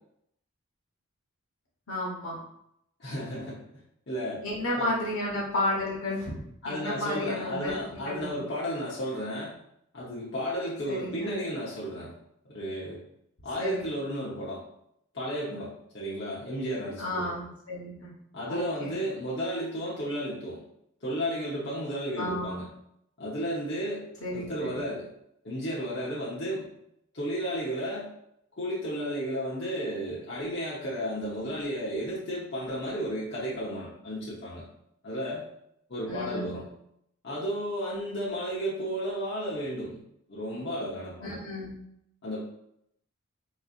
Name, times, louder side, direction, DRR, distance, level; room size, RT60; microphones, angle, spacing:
voice 1, 1.9-2.4 4.4-6.3 6.6-8.4 10.9-11.4 13.6-13.9 17.0-18.1 18.5-19.0 22.2-22.6 24.2-24.7 36.1-36.6 41.2-41.7, left 1 dB, 80° left, -4 dB, 1.2 m, -32 dB
voice 2, 3.0-3.6 4.1-4.4 4.7-4.9 6.6-9.5 9.9-12.1 12.5-13.0 13.4-14.6 15.1-17.3 18.3-20.6 21.0-22.7 23.2-25.1 25.4-26.7 27.1-28.1 28.6-34.7 35.0-35.4 35.9-36.7 37.2-40.0 40.3-41.4 42.2-42.4, equal, 50° left, -7 dB, 0.9 m, -33 dB
3.9 x 3.1 x 2.4 m, 0.76 s
head